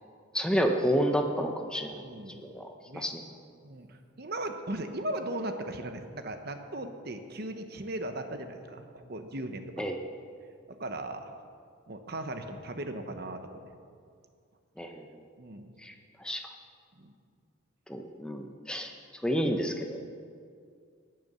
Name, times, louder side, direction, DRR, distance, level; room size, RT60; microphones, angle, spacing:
voice 1, 0.3-1.9 2.3-2.6 2.9-3.2 9.8-10.0 14.8-15.0 15.8-16.4 17.9-18.9 19.2-20.1, equal, 5° left, 4 dB, 0.7 m, -29 dB
voice 2, 2.0-2.5 2.9-3.1 3.6-9.8 10.7-11.3 11.9-13.6 15.4-15.7 17.0-17.1, right 1 dB, 50° right, 7 dB, 0.9 m, -38 dB
18.5 x 6.8 x 6.8 m, 2.3 s
head